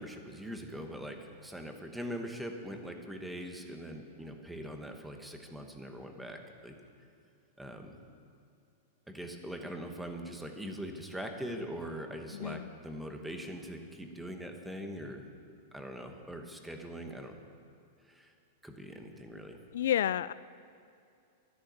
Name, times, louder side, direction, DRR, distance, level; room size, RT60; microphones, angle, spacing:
voice 1, 0.0-6.7 7.6-8.0 9.1-15.2 15.7-17.4 18.1-18.3 18.6-19.6, equal, 5° right, 4 dB, 1.0 m, -42 dB
voice 2, 12.3-12.7 19.7-20.3, left 11 dB, 75° left, 18 dB, 0.3 m, -30 dB
12.0 x 11.0 x 9.3 m, 2.5 s
supercardioid pair, 170°, 0 cm